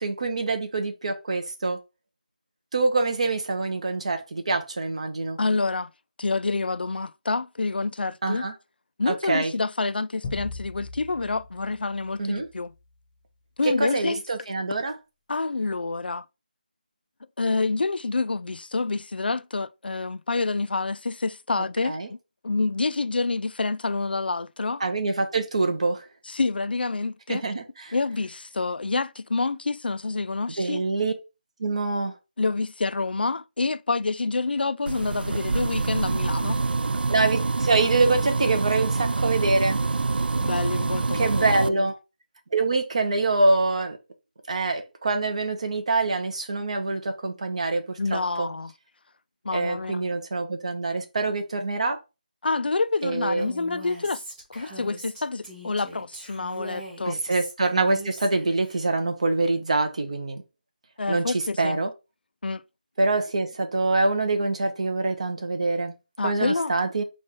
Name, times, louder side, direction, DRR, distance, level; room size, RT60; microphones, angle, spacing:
voice 1, 0.0-1.8 2.7-5.4 8.2-8.5 9.1-9.5 12.2-12.5 13.6-14.9 21.8-22.1 24.8-26.1 27.3-27.9 30.6-31.1 31.6-32.1 37.1-39.8 41.1-42.0 42.5-44.0 44.5-48.5 49.5-52.0 53.0-53.5 57.1-60.4 61.1-61.9 63.0-65.9 66.2-67.0, right 3 dB, 45° right, 0.7 m, -25 dB
voice 2, 5.4-5.9 6.2-8.5 9.0-12.7 13.6-14.2 15.3-16.3 17.4-22.2 22.4-24.8 26.3-27.4 27.9-30.8 32.4-36.6 40.4-41.9 48.0-48.7 49.4-50.1 52.4-54.2 54.5-57.2 61.0-61.8 62.4-62.6 66.2-66.7, left 3 dB, 80° left, 0.3 m, -27 dB
sound 1, 10.2-12.8, left 3 dB, 15° left, 0.9 m, -39 dB
sound 2, 34.9-41.7, right 3 dB, 80° right, 0.3 m, -26 dB
Female speech woman speaking, 53.4-58.8, right 1 dB, 15° right, 1.8 m, -41 dB
4.4 x 2.4 x 4.3 m
figure-of-eight pair, 170°, 5 cm